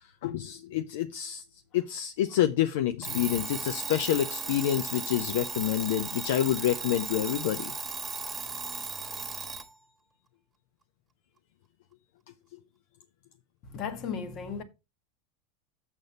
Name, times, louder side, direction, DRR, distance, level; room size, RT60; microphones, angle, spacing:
voice 1, 0.2-1.4 1.7-7.7, left 11 dB, 60° left, 0.5 m, -28 dB
Alarm, 3.0-9.7, right 5 dB, 20° right, 1.4 m, -36 dB
voice 2, 13.7-14.6, left 6 dB, 45° left, 1.3 m, -35 dB
7.3 x 6.3 x 4.1 m
figure-of-eight pair, 85°, 0 cm